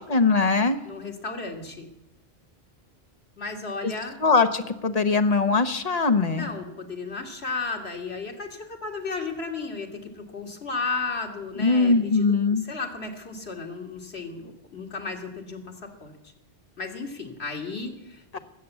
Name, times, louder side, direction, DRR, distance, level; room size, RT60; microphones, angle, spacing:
voice 1, 0.0-0.8 3.8-3.9 4.2-6.5 11.6-12.6 18.3-18.4, left 4 dB, 40° left, 8 dB, 1.1 m, -21 dB
voice 2, 0.9-1.9 3.4-4.2 6.3-12.3 12.7-16.2 16.8-18.4, left 4 dB, 90° left, 2 dB, 2.5 m, -34 dB
19.5 x 8.4 x 8.2 m, 0.88 s
omnidirectional pair, 1.1 m